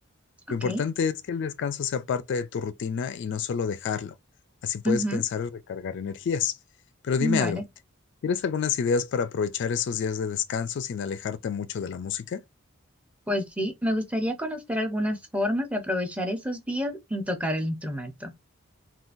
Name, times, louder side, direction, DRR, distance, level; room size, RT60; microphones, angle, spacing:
voice 1, 0.5-4.2 4.6-6.6 7.0-7.6 8.2-12.4, left 6 dB, 55° left, 0.3 m, -28 dB
voice 2, 4.8-5.2 7.2-7.7 13.3-18.3, equal, 5° right, 0.6 m, -28 dB
3.7 x 2.4 x 2.5 m
head